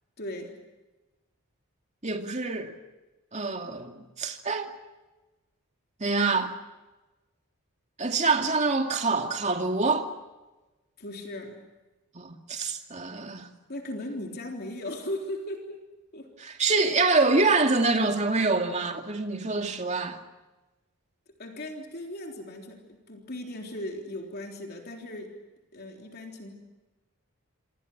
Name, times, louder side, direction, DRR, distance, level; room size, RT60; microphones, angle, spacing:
voice 1, 0.2-0.6 11.0-11.6 13.7-15.8 16.1-16.3 21.4-25.4 25.7-26.5, left 1 dB, 45° left, 3.6 m, -37 dB
voice 2, 2.0-2.8 3.3-4.7 6.0-6.5 8.0-10.1 12.1-13.5 16.4-20.2, right 3 dB, 30° right, 2.5 m, -26 dB
27.0 x 26.5 x 6.2 m
head